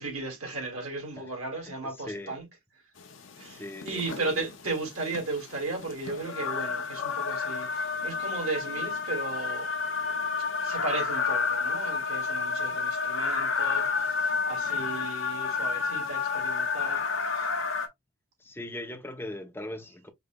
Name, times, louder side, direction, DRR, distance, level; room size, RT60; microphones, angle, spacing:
voice 1, 0.0-2.4 3.4-9.7 10.6-17.5, right 3 dB, 90° right, 2.4 m, -35 dB
voice 2, 1.7-2.4 3.4-4.5 18.4-20.1, left 1 dB, 10° left, 0.6 m, -40 dB
sound 1, 3.0-17.9, left 5 dB, 65° left, 0.9 m, -30 dB
5.1 x 3.0 x 2.2 m
head